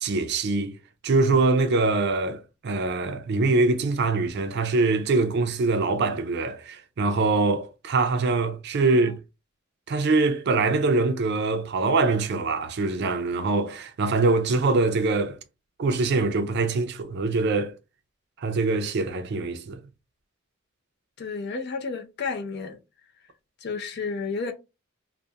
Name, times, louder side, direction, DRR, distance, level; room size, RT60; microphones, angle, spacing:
voice 1, 0.0-0.7 1.0-9.1 9.9-15.4 15.8-17.7 18.4-19.8, right 3 dB, 55° right, 0.4 m, -23 dB
voice 2, 8.8-9.2 21.2-22.8 23.6-24.5, left 4 dB, 55° left, 0.5 m, -31 dB
2.3 x 2.1 x 2.7 m
head